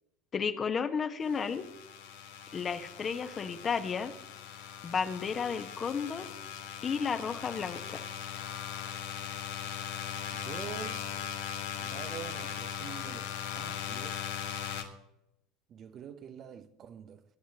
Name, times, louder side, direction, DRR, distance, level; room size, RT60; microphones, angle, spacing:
voice 1, 0.3-1.7 2.5-4.1 4.8-6.3 6.8-8.0, left 6 dB, 35° left, 1.3 m, -33 dB
sound 1, 1.2-14.8, left 9 dB, 70° left, 1.6 m, -39 dB
voice 2, 8.8-10.0 10.3-11.5 11.8-14.5 15.7-17.2, right 8 dB, 45° right, 1.0 m, -47 dB
22.5 x 10.0 x 3.0 m
figure-of-eight pair, 70°, 0 cm